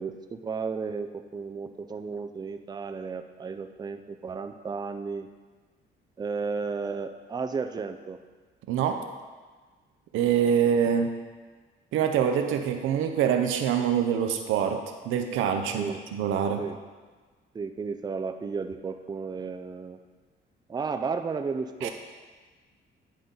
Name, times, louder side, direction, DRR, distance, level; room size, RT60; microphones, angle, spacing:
voice 1, 0.0-5.3 6.2-8.2 15.7-16.0 16.6-16.8 17.5-20.0 20.7-21.9, right 5 dB, 20° right, 7 dB, 0.4 m, -33 dB
voice 2, 8.7-9.0 10.1-11.1 11.9-16.7 21.8-21.9, right 8 dB, 85° right, 5 dB, 0.7 m, -25 dB
10.0 x 3.9 x 3.9 m, 1.4 s
cardioid pair, 90°, 20 cm